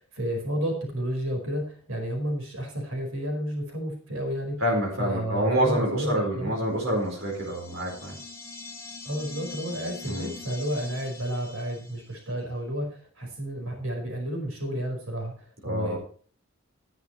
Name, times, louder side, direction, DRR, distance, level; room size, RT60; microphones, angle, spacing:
voice 1, 0.0-4.6 5.0-6.5 9.0-16.0, equal, 80° right, 3 dB, 4.8 m, -31 dB
voice 2, 4.6-8.1 10.1-10.3 15.6-16.0, right 1 dB, 65° right, -1 dB, 4.6 m, -27 dB
sound 1, 6.9-12.3, left 3 dB, 15° left, 3.1 m, -43 dB
14.0 x 11.0 x 3.2 m, 0.44 s
head